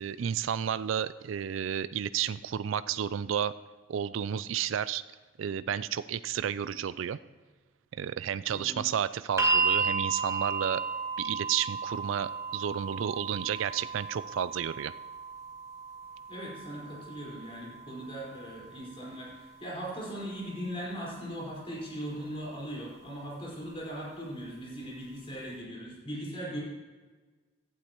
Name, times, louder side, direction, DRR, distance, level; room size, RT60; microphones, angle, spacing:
voice 1, 0.0-3.5 3.9-5.0 5.4-7.2 7.9-10.8 11.2-14.9, right 9 dB, 85° right, 15 dB, 0.4 m, -31 dB
voice 2, 8.5-8.8 16.3-26.6, equal, 30° left, -5 dB, 4.8 m, -39 dB
sound 1, 9.4-21.5 22.5-22.6, right 4 dB, 15° right, 1.6 m, -34 dB
17.5 x 12.0 x 3.0 m, 1.4 s
head